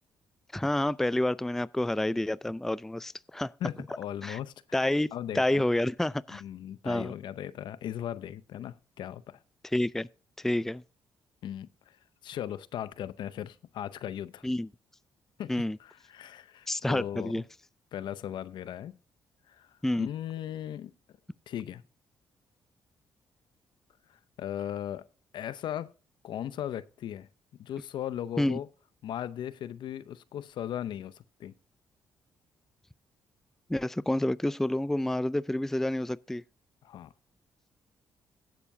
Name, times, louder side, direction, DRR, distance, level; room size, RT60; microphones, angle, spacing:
voice 1, 0.5-3.5 4.2-4.4 4.7-6.4 6.8-7.1 9.7-10.1 10.4-10.8 14.4-14.7 15.5-15.8 16.7-17.4 19.8-20.1 28.4-28.6 33.7-36.4, left 1 dB, 5° left, 0.4 m, -29 dB
voice 2, 3.6-4.8 5.1-5.7 6.3-9.4 11.4-12.0 12.2-14.5 15.4-15.5 15.8-17.4 17.9-19.0 19.5-20.9 21.5-21.8 24.1-25.1 25.3-25.9 26.2-27.3 27.6-28.7 29.0-31.5 36.8-37.1, left 10 dB, 70° left, 0.6 m, -38 dB
16.5 x 6.9 x 2.6 m
supercardioid pair, 55°, 8 cm